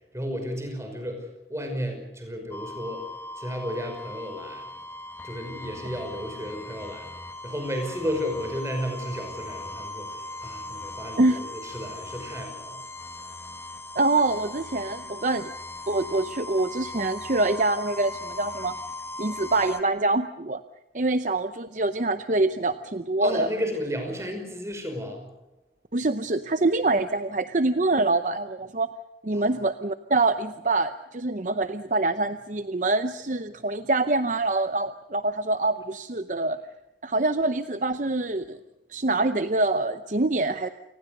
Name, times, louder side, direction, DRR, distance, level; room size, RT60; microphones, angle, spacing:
voice 1, 0.1-1.2 1.5-3.0 3.4-4.6 5.2-7.1 7.4-12.8 23.2-25.3 29.3-29.5, equal, 15° right, 4 dB, 5.5 m, -33 dB
sound 1, 2.5-19.8, left 2 dB, 15° left, 1.3 m, -39 dB
voice 2, 14.0-15.5 15.9-18.8 19.2-20.6 20.9-23.5 25.9-28.9 29.2-36.6 37.0-38.6 38.9-40.7, right 2 dB, 45° right, 10 dB, 0.7 m, -25 dB
28.0 x 20.0 x 6.6 m, 0.99 s
head